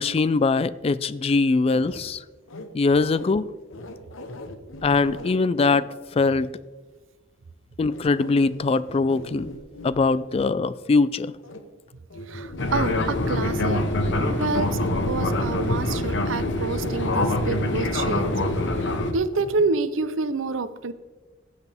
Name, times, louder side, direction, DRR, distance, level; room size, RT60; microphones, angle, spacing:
voice 1, 0.0-2.2 2.7-3.5 4.8-5.9 6.2-6.5 7.8-9.5 9.8-11.3, left 3 dB, 30° left, 17 dB, 0.3 m, -22 dB
sound 1, 1.7-2.0 2.5-3.3 3.7-5.8 6.1-6.2 7.9-9.9 11.4-11.6 12.1-12.9 13.1-14.9 15.2-15.5 17.7-17.8 18.1-19.0 19.3-19.6, left 1 dB, 90° left, 1.0 m, -39 dB
voice 2, 12.3-13.8 14.3-14.8 15.1-20.9, right 3 dB, 85° right, 13 dB, 0.7 m, -28 dB
Fixed-wing aircraft airplane, 12.6-19.1, left 1 dB, 65° left, 1.1 m, -24 dB
15.0 x 8.0 x 3.5 m, 1.3 s
head